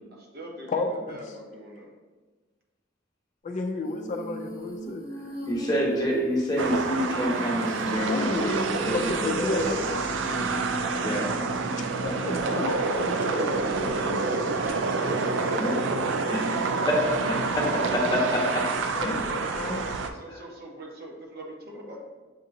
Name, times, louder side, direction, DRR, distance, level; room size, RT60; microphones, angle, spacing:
voice 1, 0.1-1.9 13.7-15.1 15.4-17.1 18.7-19.2 19.7-22.0, right 1 dB, 55° right, -1 dB, 0.9 m, -42 dB
voice 2, 0.7-1.2 3.4-5.0 8.1-10.2 12.0-13.9 19.0-19.9, left 3 dB, 40° left, 3 dB, 0.3 m, -32 dB
Female singing, 3.8-12.7 14.9-19.1, equal, 30° right, 0.9 m, -39 dB
voice 3, 5.5-8.9 9.2-9.8 11.0-11.3 15.0-15.1 15.6-15.7 16.3-16.4 16.9-18.7 19.0-19.1 19.5-19.7, equal, 20° left, -3 dB, 1.0 m, -27 dB
sound 1, 6.6-20.1, right 4 dB, 75° right, 0.4 m, -28 dB
7.2 x 2.7 x 2.6 m, 1.3 s
head